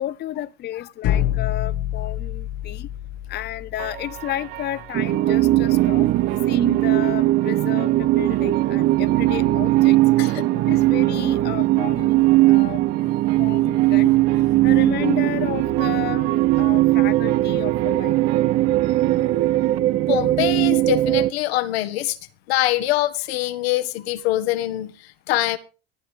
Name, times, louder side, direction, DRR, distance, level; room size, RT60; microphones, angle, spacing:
voice 1, 0.0-2.9 3.3-6.1 6.5-12.8 13.4-14.1 14.6-18.2, left 12 dB, 35° left, 0.6 m, -32 dB
sound 1, 1.0-4.9, left 11 dB, 50° left, 1.2 m, -27 dB
sound 2, 3.8-19.8, right 18 dB, 75° right, 1.0 m, -37 dB
sound 3, 4.9-21.3, right 16 dB, 45° right, 0.8 m, -19 dB
voice 2, 20.1-22.2 22.5-25.6, left 15 dB, 85° left, 1.5 m, -24 dB
19.5 x 11.5 x 3.4 m
supercardioid pair, 100°, 30 cm